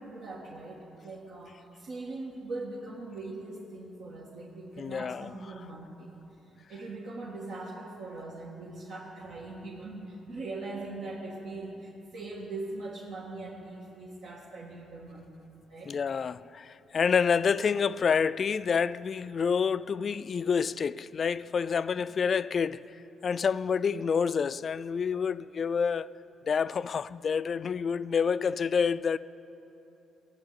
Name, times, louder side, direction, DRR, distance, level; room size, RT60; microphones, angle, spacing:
voice 1, 0.0-6.1 6.7-15.9, right 2 dB, 80° right, 1.7 m, -41 dB
voice 2, 4.8-5.3 15.9-22.8 23.2-26.1 26.5-29.2, left 6 dB, 45° left, 0.3 m, -28 dB
15.5 x 7.3 x 9.8 m
cardioid pair, 90°, 0 cm